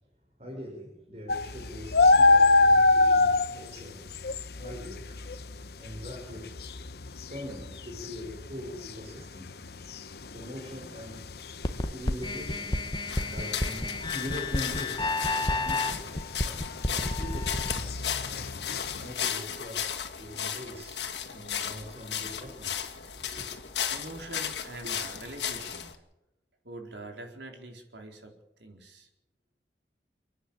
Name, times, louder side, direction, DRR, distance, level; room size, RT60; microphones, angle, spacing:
voice 1, 0.4-4.1 4.6-5.2 5.8-6.6 7.3-9.6 10.3-11.3 11.9-12.8 13.3-18.6 19.0-22.7 23.1-23.4, equal, 40° right, -1 dB, 6.1 m, -42 dB
sound 1, 1.3-19.1, left 3 dB, 60° left, 0.9 m, -27 dB
sound 2, 11.6-17.8, left 2 dB, 25° left, 1.2 m, -31 dB
sound 3, 13.1-26.0, left 8 dB, 80° left, 2.3 m, -35 dB
voice 2, 23.8-25.9 26.6-29.1, right 2 dB, 90° right, 3 dB, 4.2 m, -44 dB
29.5 x 10.0 x 8.9 m, 0.93 s
head